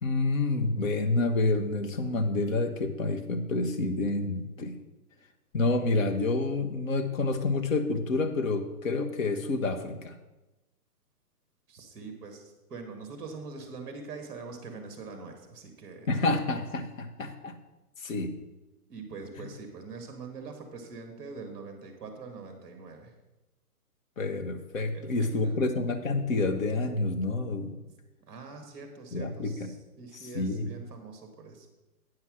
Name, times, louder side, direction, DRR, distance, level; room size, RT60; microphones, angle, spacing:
voice 1, 0.0-4.7 5.5-10.1 16.1-17.6 18.0-18.3 24.2-27.7 29.1-29.7 30.3-30.7, left 3 dB, 55° left, 5 dB, 1.1 m, -28 dB
voice 2, 11.7-16.4 18.9-23.1 24.9-25.6 28.3-31.7, right 4 dB, 15° right, 5 dB, 1.3 m, -43 dB
9.4 x 5.7 x 6.2 m, 1.0 s
hypercardioid pair, 170°, 46 cm